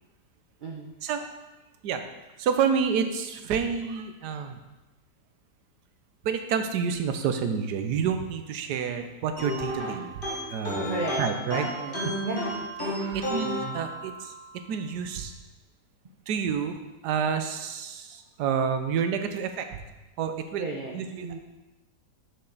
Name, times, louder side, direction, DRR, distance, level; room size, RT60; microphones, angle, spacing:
voice 1, 0.6-0.9 10.8-11.2 11.5-12.6 20.6-21.4, right 2 dB, 45° right, -1 dB, 0.6 m, -34 dB
voice 2, 2.4-4.6 6.2-10.9 11.2-11.6 12.0-12.1 12.9-14.3 14.7-15.3 16.3-19.7 20.2-20.7 20.9-21.3, right 7 dB, 75° right, 7 dB, 1.3 m, -29 dB
sound 1, 9.4-14.4, equal, 35° left, 1.5 m, -32 dB
7.5 x 6.4 x 4.0 m, 1.1 s
omnidirectional pair, 1.8 m